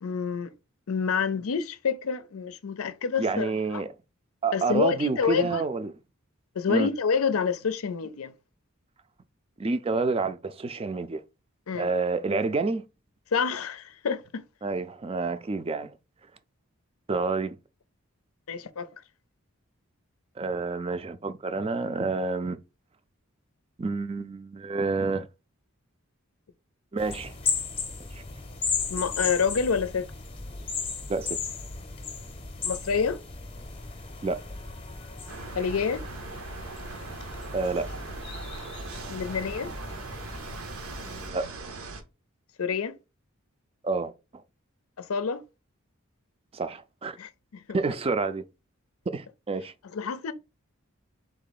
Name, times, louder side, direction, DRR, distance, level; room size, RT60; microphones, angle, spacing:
voice 1, 0.0-0.5 0.9-3.8 4.5-5.6 6.6-8.3 11.7-11.9 13.3-14.4 18.5-18.9 28.9-30.1 32.6-33.2 35.5-36.1 39.1-39.7 42.6-43.0 45.0-45.4 47.2-47.8 49.9-50.3, left 6 dB, 90° left, 0.5 m, -28 dB
voice 2, 3.2-3.9 4.4-5.9 6.7-6.9 9.6-11.2 11.7-12.9 14.6-15.9 17.1-17.6 20.4-22.6 23.8-25.3 26.9-27.3 31.1-31.4 34.2-34.4 37.5-37.9 41.0-41.5 43.8-44.1 46.5-47.2 47.7-48.4 49.1-49.7, right 3 dB, 25° right, 0.4 m, -28 dB
sound 1, 27.0-41.3, left 5 dB, 25° left, 0.7 m, -36 dB
sound 2, 35.3-42.0, right 3 dB, 75° right, 0.8 m, -40 dB
3.7 x 3.0 x 4.0 m
head